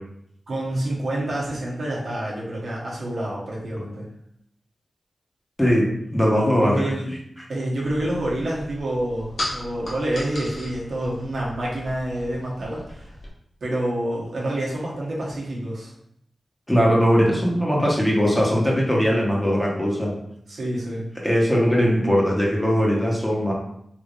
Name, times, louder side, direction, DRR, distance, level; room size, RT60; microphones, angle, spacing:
voice 1, 0.5-4.1 6.6-7.1 7.5-13.1 13.6-15.9 20.5-21.1, right 1 dB, 75° right, -5 dB, 1.0 m, -28 dB
voice 2, 5.6-6.8 16.7-20.1 21.2-23.5, equal, 10° left, -3 dB, 1.1 m, -20 dB
sound 1, 7.8-13.3, left 1 dB, 65° left, 0.8 m, -37 dB
3.5 x 2.9 x 2.5 m, 0.74 s
cardioid pair, 50°, 0 cm